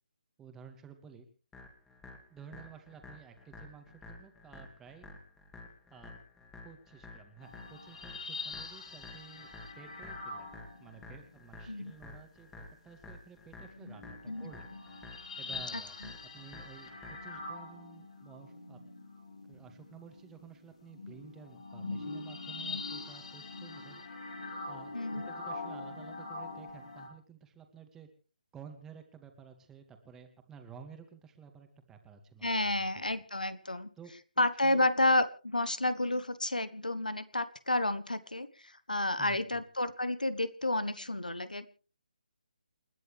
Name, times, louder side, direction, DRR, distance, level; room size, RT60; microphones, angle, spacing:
voice 1, 0.4-1.3 2.3-5.1 5.9-6.1 6.6-10.5 10.8-14.7 15.4-15.9 16.2-18.8 19.5-24.0 24.7-28.1 28.5-32.9 34.0-34.1 34.6-34.9 39.2-39.6, right 7 dB, 10° right, 6 dB, 2.1 m, -53 dB
sound 1, 1.5-17.5, left 3 dB, 10° left, 2.6 m, -52 dB
sound 2, 7.4-11.3 13.6-27.1, left 3 dB, 55° left, 5.2 m, -44 dB
voice 2, 15.7-16.1 24.9-25.3 32.4-33.9 34.4-41.7, left 2 dB, 80° left, 14 dB, 1.4 m, -31 dB
29.0 x 10.5 x 3.4 m, 0.38 s
figure-of-eight pair, 145°, 4 cm